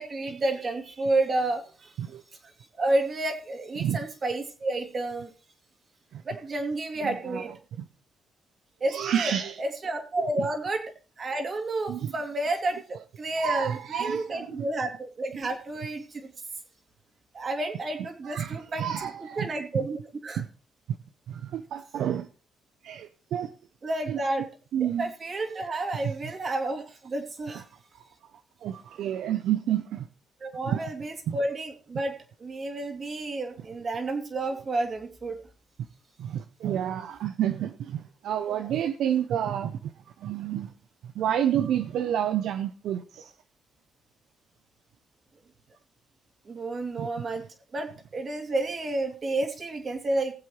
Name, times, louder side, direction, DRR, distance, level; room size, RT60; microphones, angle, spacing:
voice 1, 0.0-2.2 2.8-5.3 6.3-7.5 8.8-10.8 11.2-12.8 13.2-16.3 17.3-19.1 19.4-20.0 20.2-20.4 23.8-24.4 25.0-27.6 30.4-32.1 32.4-35.4 46.5-47.4 47.7-50.3, right 2 dB, 40° right, 4 dB, 2.6 m, -30 dB
voice 2, 7.0-7.5 7.8-7.9 8.9-9.6 10.2-10.5 11.9-12.1 13.4-14.7 18.2-19.5 20.4-20.5 21.3-22.3 22.8-23.5 24.1-24.2 24.7-25.1 26.0-26.1 27.5-27.6 28.6-30.1 30.7-30.9 31.3-31.4 36.2-39.9 40.2-40.7 41.0-43.3 47.0-47.1, right 10 dB, 75° right, 9 dB, 0.6 m, -29 dB
20.5 x 7.6 x 3.1 m, 0.38 s
cardioid pair, 90°, 0 cm